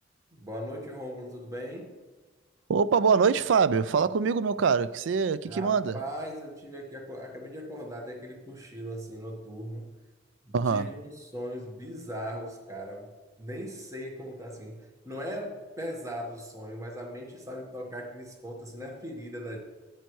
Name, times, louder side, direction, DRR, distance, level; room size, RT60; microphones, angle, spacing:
voice 1, 0.3-2.0 5.4-9.9 10.4-13.1 13.4-19.6, equal, 15° right, 1.4 m, -39 dB
voice 2, 2.7-6.0 10.5-10.9, right 5 dB, 75° right, 0.4 m, -24 dB
11.0 x 9.3 x 3.1 m
head